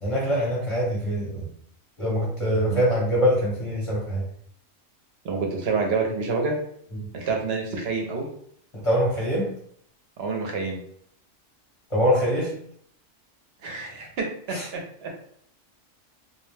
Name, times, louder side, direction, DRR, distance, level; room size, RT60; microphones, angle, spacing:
voice 1, 0.0-1.5 2.0-4.2 8.7-9.5 11.9-12.5 14.5-14.7, equal, 30° left, -5 dB, 0.7 m, -24 dB
voice 2, 5.2-6.5 7.1-8.3 10.2-10.8 13.6-14.6 15.0-15.1, right 4 dB, 60° right, 1 dB, 0.7 m, -27 dB
2.3 x 2.1 x 3.1 m, 0.64 s
omnidirectional pair, 1.4 m